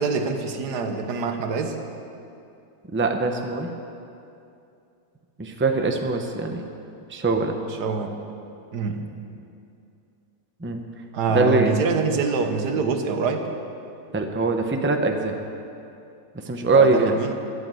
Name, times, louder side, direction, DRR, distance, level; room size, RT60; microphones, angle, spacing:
voice 1, 0.0-1.8 7.7-8.1 8.7-9.0 11.1-13.5 16.7-17.3, right 4 dB, 85° right, 5 dB, 1.7 m, -25 dB
voice 2, 2.9-3.7 5.4-6.6 7.1-7.5 10.6-10.8 11.3-11.7 14.1-15.3 16.4-17.2, right 3 dB, 10° right, 4 dB, 0.7 m, -22 dB
13.5 x 12.0 x 7.7 m, 2.6 s
omnidirectional pair, 1.7 m